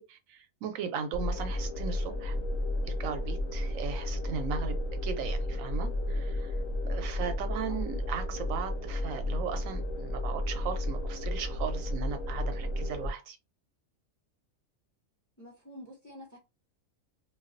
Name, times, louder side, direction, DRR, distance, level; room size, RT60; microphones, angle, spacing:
voice 1, 0.0-2.4 2.9-4.8 5.0-6.6 6.9-13.4, right 7 dB, 90° right, 1.0 m, -37 dB
sound 1, 1.1-13.1, left 1 dB, 45° left, 0.9 m, -32 dB
voice 2, 15.4-16.4, equal, 20° left, 0.6 m, -48 dB
2.3 x 2.2 x 2.5 m
omnidirectional pair, 1.3 m